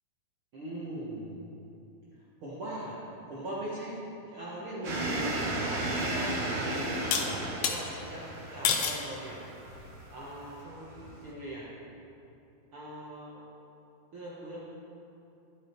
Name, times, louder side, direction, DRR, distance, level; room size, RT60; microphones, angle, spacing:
voice 1, 0.5-1.3 2.4-2.9 3.3-3.9 4.3-9.4 10.1-11.6 12.7-13.4 14.1-14.6, right 1 dB, 60° right, -7 dB, 1.4 m, -40 dB
sound 1, 4.8-11.3, right 1 dB, 90° right, 0.9 m, -34 dB
sound 2, 7.1-7.8 8.6-9.0 9.7-10.1, left 7 dB, 85° left, 1.5 m, -29 dB
12.0 x 8.3 x 4.5 m, 2.9 s
omnidirectional pair, 4.2 m